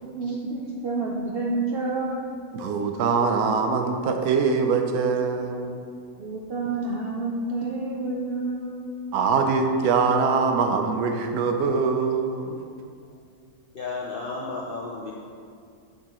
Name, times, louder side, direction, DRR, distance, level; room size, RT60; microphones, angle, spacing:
voice 1, 0.0-2.2 6.1-8.9, right 3 dB, 60° right, -3 dB, 0.6 m, -29 dB
voice 2, 2.5-5.8 9.1-12.6, right 5 dB, 85° right, 5 dB, 1.1 m, -23 dB
voice 3, 13.1-15.1, left 3 dB, 65° left, -2 dB, 0.5 m, -34 dB
6.4 x 6.1 x 3.0 m, 2.3 s
omnidirectional pair, 1.5 m